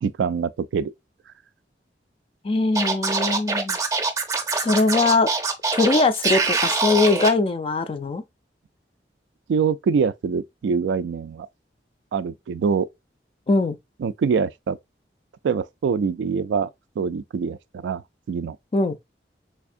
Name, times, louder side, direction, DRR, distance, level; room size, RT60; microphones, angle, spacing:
voice 1, 0.0-0.9 9.5-11.5 12.1-12.9 14.0-14.8 15.4-16.7 17.0-18.0 18.3-18.6, right 6 dB, 90° right, 0.3 m, -24 dB
voice 2, 2.4-3.8 4.6-5.3 5.7-8.2 13.5-13.8 18.7-19.0, left 3 dB, 30° left, 0.3 m, -21 dB
Scratching (performance technique), 2.7-7.3, right 3 dB, 20° right, 0.6 m, -24 dB
3.5 x 3.4 x 2.4 m
head